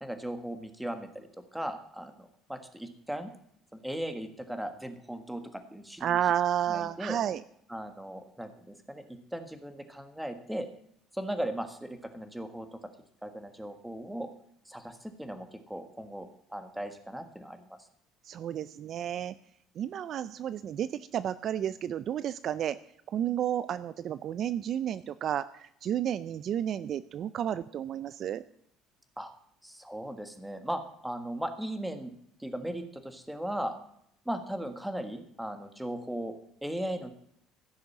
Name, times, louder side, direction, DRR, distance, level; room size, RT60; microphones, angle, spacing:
voice 1, 0.0-3.3 3.7-6.2 6.7-7.2 7.7-10.7 11.1-12.8 13.2-14.3 14.7-17.8 29.2-29.3 29.6-32.1 32.4-33.7 34.2-36.3 36.6-37.1, right 1 dB, 5° right, 8 dB, 1.6 m, -37 dB
voice 2, 6.0-7.4 18.2-19.3 19.8-22.8 23.1-28.4, right 10 dB, 50° right, 15 dB, 0.4 m, -31 dB
15.5 x 6.6 x 7.2 m, 0.71 s
cardioid pair, 130°, 0 cm